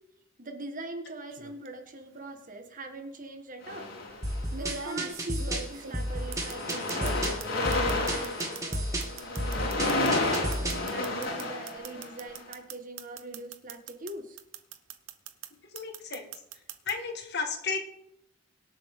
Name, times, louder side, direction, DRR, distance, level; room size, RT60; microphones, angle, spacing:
voice 1, 0.4-4.0 4.6-9.2 9.6-14.4, right 2 dB, 45° right, 5 dB, 1.7 m, -42 dB
sound 1, 1.3-1.7 2.9-3.0 4.5-7.5 7.7-14.1 14.4-15.5 15.8-16.9, right 6 dB, 70° right, 1.0 m, -41 dB
sound 2, 3.6-4.6 5.4-5.6 5.9-12.4, left 2 dB, 85° left, 4.6 m, -31 dB
sound 3, 4.2-10.9, right 1 dB, 15° right, 2.0 m, -33 dB
voice 2, 15.7-16.2 16.9-17.8, left 5 dB, 55° left, 5 dB, 1.8 m, -33 dB
24.5 x 8.3 x 3.8 m, 0.80 s
head